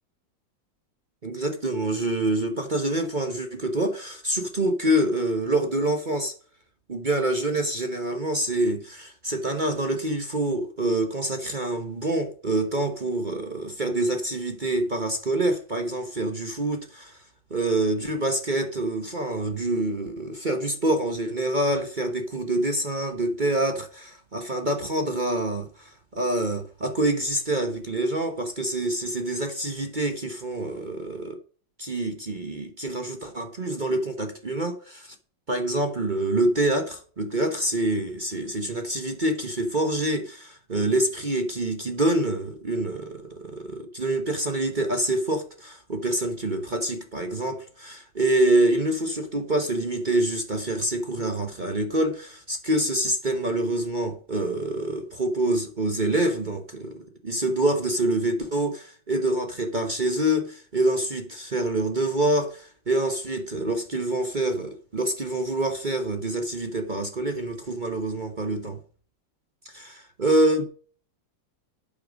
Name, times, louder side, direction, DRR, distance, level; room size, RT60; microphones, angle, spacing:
voice 1, 1.2-6.3 6.9-17.2 17.5-31.4 31.8-35.1 35.5-68.8 69.6-70.7, right 1 dB, 35° right, 0.9 m, -26 dB
8.7 x 6.6 x 5.1 m
omnidirectional pair, 2.1 m